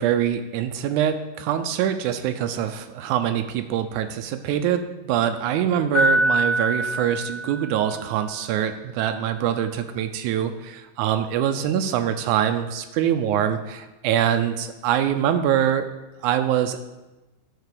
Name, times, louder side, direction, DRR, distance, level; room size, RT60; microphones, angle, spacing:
voice 1, 0.0-15.9 16.2-16.8, right 10 dB, 80° right, 8 dB, 1.9 m, -24 dB
Piano, 5.9-8.0, right 1 dB, 25° left, 1.0 m, -23 dB
11.0 x 4.1 x 6.8 m, 1.1 s
omnidirectional pair, 3.5 m